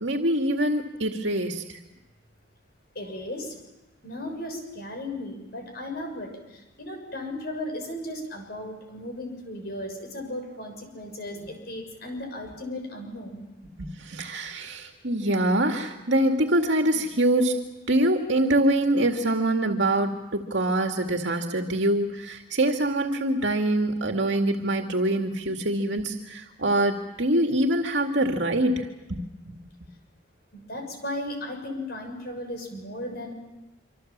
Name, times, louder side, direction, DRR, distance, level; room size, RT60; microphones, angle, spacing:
voice 1, 0.0-1.8 13.8-17.6 17.9-29.6, right 1 dB, 75° right, 4 dB, 2.3 m, -24 dB
voice 2, 2.9-3.5 4.0-13.5 30.5-33.3, left 1 dB, 55° left, 4 dB, 6.7 m, -36 dB
26.0 x 26.0 x 7.4 m, 1.0 s
head